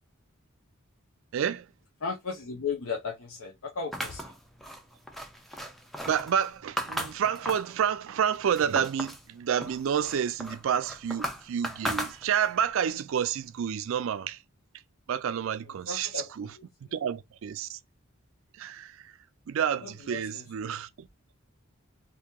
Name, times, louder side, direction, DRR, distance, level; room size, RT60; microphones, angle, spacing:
voice 1, 1.3-1.7 6.1-14.4 15.1-16.1 16.4-16.5 16.9-17.8 18.6-18.9 19.5-20.9, right 8 dB, 70° right, 0.3 m, -29 dB
voice 2, 2.0-4.3 15.7-16.9 19.8-20.5, left 5 dB, 70° left, 0.7 m, -36 dB
sound 1, 3.9-7.8 8.2-9.3 9.6-12.6, equal, ahead, 0.4 m, -36 dB
2.9 x 2.8 x 3.5 m
head